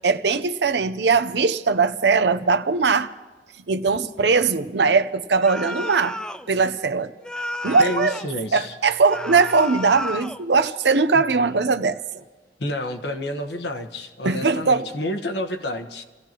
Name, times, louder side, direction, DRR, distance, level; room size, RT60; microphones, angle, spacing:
voice 1, 0.0-3.1 3.7-6.2 6.5-7.1 7.6-8.2 8.5-12.0 14.2-14.9, right 4 dB, 70° right, 0.7 m, -20 dB
sound 1, 5.4-6.5 7.2-8.4 9.1-10.4, left 1 dB, 5° left, 0.4 m, -32 dB
voice 2, 7.8-8.7 11.1-11.8 12.6-16.0, left 1 dB, 70° left, 1.2 m, -30 dB
28.5 x 16.0 x 3.0 m
head